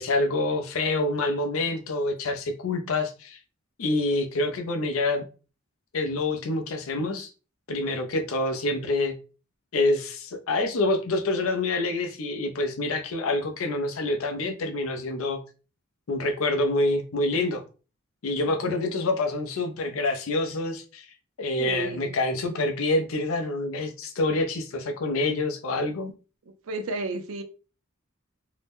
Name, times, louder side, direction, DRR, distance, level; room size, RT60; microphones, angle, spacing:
voice 1, 0.0-3.4 3.8-5.2 5.9-7.3 7.7-9.2 9.7-15.4 16.1-17.6 18.2-21.0 21.4-26.1, left 2 dB, 80° left, 0.5 m, -27 dB
voice 2, 21.6-22.2 26.6-27.4, right 2 dB, 85° right, 0.5 m, -32 dB
2.7 x 2.1 x 3.5 m
head